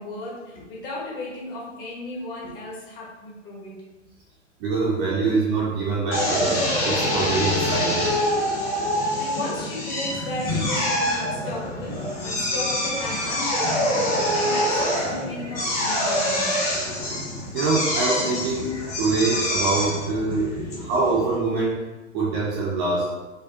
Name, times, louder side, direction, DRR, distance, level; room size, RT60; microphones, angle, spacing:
voice 1, 0.0-3.7 9.2-17.0 20.4-21.0, left 2 dB, 45° left, -4 dB, 1.3 m, -35 dB
voice 2, 4.6-8.0 17.5-18.7 19.0-21.8 22.1-23.1, right 3 dB, 20° right, -6 dB, 0.4 m, -24 dB
Drill, 6.1-21.4, left 1 dB, 20° left, 0.7 m, -25 dB
4.9 x 2.2 x 2.6 m, 1.2 s
figure-of-eight pair, 115°, 39 cm